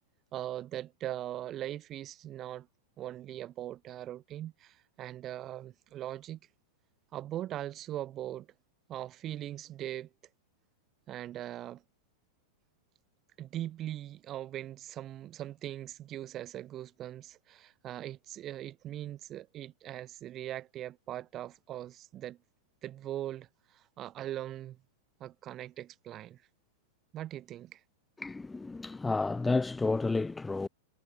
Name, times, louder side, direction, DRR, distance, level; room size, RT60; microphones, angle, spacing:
voice 1, 0.3-2.7 3.0-6.4 7.1-8.5 8.9-10.1 11.1-11.8 13.4-22.4 22.8-24.8 25.2-26.4 27.1-27.8, right 12 dB, 35° right, 3.1 m, -40 dB
voice 2, 28.2-30.7, left 3 dB, 10° left, 0.4 m, -31 dB
hypercardioid pair, 120°, 0 cm